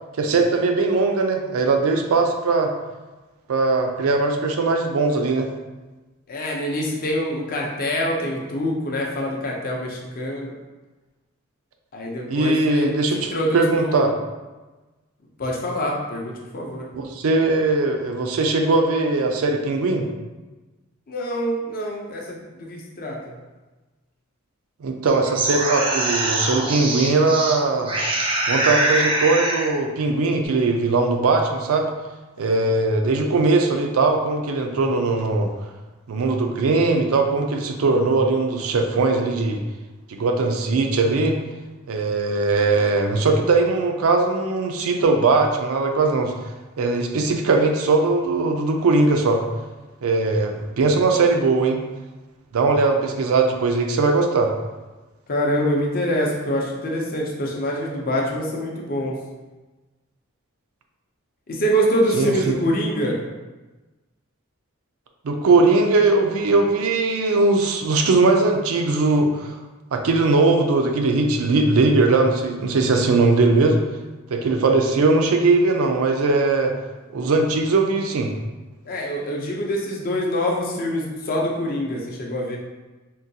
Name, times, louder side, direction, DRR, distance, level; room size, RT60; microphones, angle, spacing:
voice 1, 0.2-2.7 3.5-5.5 12.3-14.1 16.9-20.1 24.8-27.9 28.5-31.9 32.4-35.5 36.1-39.6 40.1-41.4 41.9-46.3 46.8-49.4 50.0-51.8 52.5-54.5 62.1-62.3 65.2-69.5 69.9-73.8 74.3-76.7 77.1-78.3, right 3 dB, 85° right, 4 dB, 0.4 m, -20 dB
voice 2, 6.3-10.5 11.9-12.9 13.3-14.1 15.4-16.9 21.1-23.3 32.4-32.7 55.3-59.1 61.5-63.2 78.9-82.6, equal, 45° left, -1 dB, 0.6 m, -25 dB
sound 1, 25.1-27.6 27.9-29.7, right 2 dB, 25° right, 0.4 m, -23 dB
3.7 x 2.2 x 2.7 m, 1.2 s
head